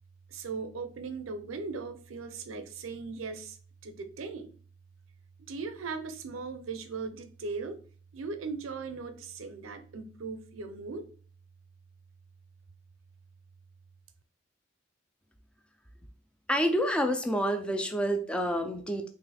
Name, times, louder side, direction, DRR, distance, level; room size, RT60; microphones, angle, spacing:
voice 1, 0.3-3.6 3.8-4.5 5.5-7.8 8.1-11.0, right 4 dB, 80° right, 0.5 m, -38 dB
voice 2, 16.5-19.1, equal, 5° left, 0.3 m, -28 dB
3.1 x 2.5 x 4.0 m
head